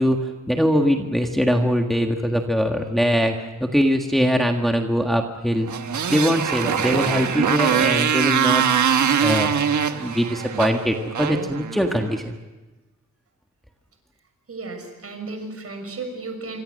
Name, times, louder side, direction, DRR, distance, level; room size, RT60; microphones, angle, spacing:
voice 1, 0.0-3.4 3.7-5.7 6.1-8.6 9.1-9.5 10.0-12.3, equal, ahead, 3 dB, 1.6 m, -22 dB
Motorcycle, 5.6-12.2, right 8 dB, 80° right, 1.4 m, -22 dB
voice 2, 14.5-16.6, right 3 dB, 50° right, 5 dB, 6.3 m, -34 dB
26.5 x 25.0 x 6.5 m, 1.1 s
wide cardioid pair, 140°, 29 cm